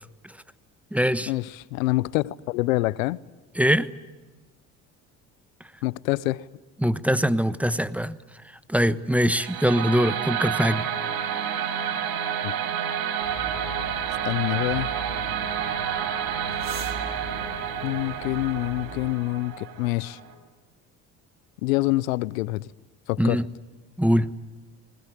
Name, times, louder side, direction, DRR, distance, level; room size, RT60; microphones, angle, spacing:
voice 1, 0.9-1.3 3.5-3.9 6.8-8.2 8.7-10.9 23.2-23.5 24.0-24.3, equal, 5° right, 1.1 m, -22 dB
voice 2, 1.7-3.2 5.8-6.4 12.4-12.5 14.3-14.9 17.8-20.2 21.6-22.7 23.1-23.4, left 19 dB, 90° left, 0.7 m, -26 dB
sound 1, 9.3-20.3, right 8 dB, 70° right, 4.9 m, -29 dB
sound 2, 13.2-19.1, right 4 dB, 40° right, 3.9 m, -40 dB
21.0 x 20.0 x 9.9 m
hypercardioid pair, 65°, 39 cm